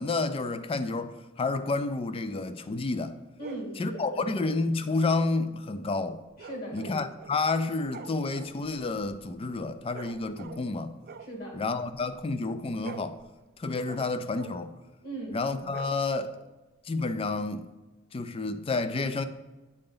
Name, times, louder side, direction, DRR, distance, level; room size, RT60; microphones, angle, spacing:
voice 1, 0.0-3.2 3.8-6.2 6.7-10.9 11.5-13.2 13.6-14.7 15.3-16.3 16.8-17.7 18.1-19.2, left 3 dB, 30° left, 0.4 m, -30 dB
voice 2, 3.4-4.3 6.4-7.1 11.2-11.6 15.0-15.4, right 1 dB, 50° left, 1.9 m, -39 dB
sound 1, 3.4-3.8 6.4-7.5 7.8-10.8 11.0-12.3 12.6-14.7 15.6-16.4, right 5 dB, 50° right, 0.3 m, -47 dB
8.7 x 3.9 x 3.9 m
head